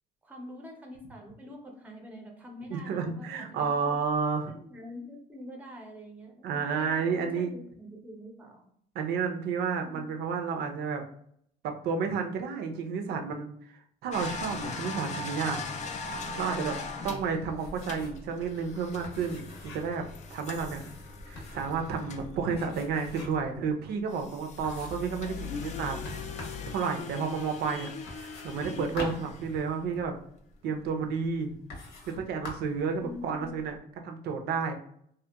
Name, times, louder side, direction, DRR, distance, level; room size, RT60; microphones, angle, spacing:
voice 1, 0.2-4.0 4.4-8.7 9.8-10.1 33.0-33.5, left 1 dB, 10° right, 1 dB, 0.5 m, -45 dB
voice 2, 2.7-4.5 6.4-7.5 8.9-11.0 11.6-15.6 16.0-16.8 17.0-20.9 21.3-26.0 26.3-30.1 30.6-31.6 32.2-33.8 34.0-34.7, right 5 dB, 70° right, 4 dB, 0.5 m, -31 dB
sound 1, 14.1-23.4 24.1-30.0 31.5-31.6 32.0-32.1 33.1-33.2 33.4-33.6, left 4 dB, 45° left, 0.4 m, -40 dB
sound 2, 17.5-18.3 18.5-18.6 19.0-20.0 20.7-21.7 22.5-23.5 24.0-24.1 24.6-25.1 26.0-26.7 28.1-30.1 30.9-31.0 31.7-32.2 32.4-32.8, left 2 dB, 85° left, 0.9 m, -44 dB
2.8 x 2.1 x 2.2 m, 0.67 s
cardioid pair, 110°, 17 cm